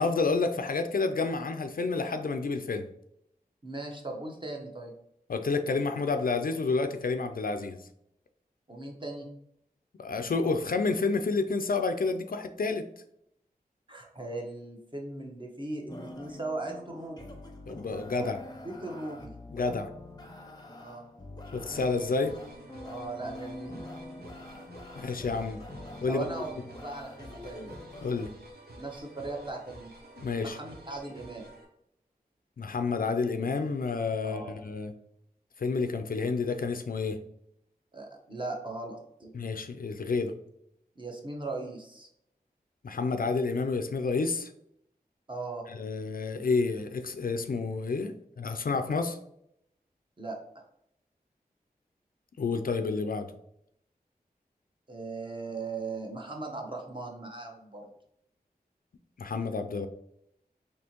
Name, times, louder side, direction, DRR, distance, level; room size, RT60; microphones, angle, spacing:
voice 1, 0.0-2.9 5.3-7.8 10.0-12.9 17.7-18.4 19.5-19.9 21.5-22.4 25.0-25.6 26.0-26.2 28.0-28.3 30.2-30.6 32.6-34.9 35.6-37.2 39.3-40.3 42.8-44.5 45.7-49.2 52.4-53.3 59.2-59.9, left 4 dB, 65° left, 7 dB, 0.4 m, -29 dB
voice 2, 3.6-4.9 8.7-9.3 13.9-17.3 18.2-18.3 18.6-19.3 20.8-21.1 22.8-23.8 26.1-26.5 26.8-27.7 28.8-29.9 30.4-31.4 34.2-34.5 37.9-39.3 41.0-42.1 45.3-45.6 50.2-50.4 54.9-57.8, right 3 dB, 30° right, 0 dB, 0.9 m, -38 dB
sound 1, 15.9-28.2, left 1 dB, 25° left, 0.6 m, -45 dB
sound 2, 21.7-31.6, right 1 dB, 80° right, 0.9 m, -50 dB
4.3 x 2.8 x 2.9 m, 0.74 s
wide cardioid pair, 70°, 16 cm